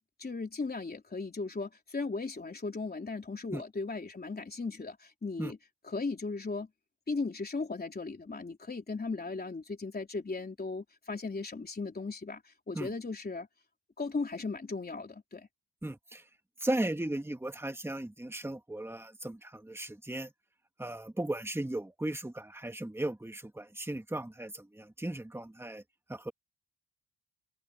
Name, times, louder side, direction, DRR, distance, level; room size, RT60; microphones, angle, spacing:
voice 1, 0.0-5.6 5.8-6.7 7.1-13.5 14.0-15.5, left 3 dB, 20° left, 3.5 m, -37 dB
voice 2, 15.8-16.2 16.6-20.3 20.8-25.8 26.1-26.3, right 1 dB, 5° right, 1.8 m, -36 dB
open air
wide cardioid pair, 160°, 44 cm